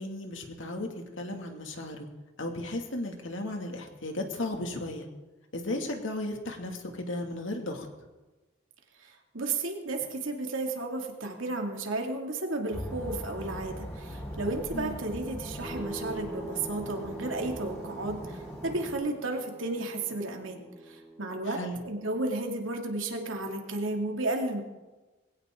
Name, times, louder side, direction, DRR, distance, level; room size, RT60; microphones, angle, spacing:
voice 1, 0.0-2.1 2.4-5.1 5.5-7.9 14.7-15.0 21.4-21.8, left 1 dB, 75° left, 3 dB, 2.4 m, -35 dB
voice 2, 9.0-24.6, right 2 dB, 85° right, 2 dB, 2.6 m, -33 dB
sound 1, 12.7-18.9, equal, 15° left, 4.9 m, -40 dB
sound 2, 15.6-21.4, right 2 dB, 10° right, 3.7 m, -44 dB
21.0 x 17.0 x 3.9 m, 1.2 s
head